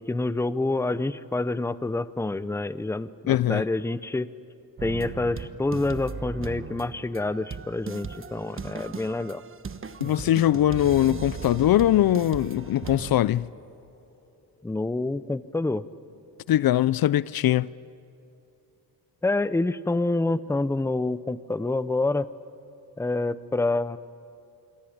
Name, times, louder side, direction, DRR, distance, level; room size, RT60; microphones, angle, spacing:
voice 1, 0.0-4.3 4.8-9.4 14.6-15.8 19.2-22.3 23.0-24.0, left 2 dB, 5° left, 0.7 m, -27 dB
voice 2, 3.3-3.6 10.0-13.5 16.5-17.7, left 13 dB, 60° left, 0.6 m, -21 dB
sound 1, 4.8-13.2, right 5 dB, 30° right, 1.2 m, -38 dB
Water tap faucet, 10.0-15.5 15.9-16.3 16.8-17.1 17.8-17.9, left 2 dB, 25° left, 4.8 m, -52 dB
27.0 x 22.5 x 8.7 m
cardioid pair, 95°, 40 cm